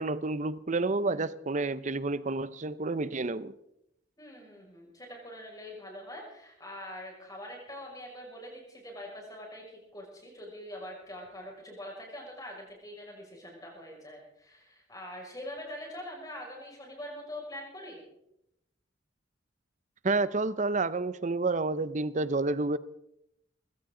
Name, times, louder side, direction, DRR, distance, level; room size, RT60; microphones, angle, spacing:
voice 1, 0.0-3.5 20.0-22.8, right 3 dB, 40° right, 0.6 m, -29 dB
voice 2, 4.2-9.6 9.9-18.0, left 1 dB, 20° left, 6.0 m, -44 dB
20.5 x 16.5 x 3.8 m
head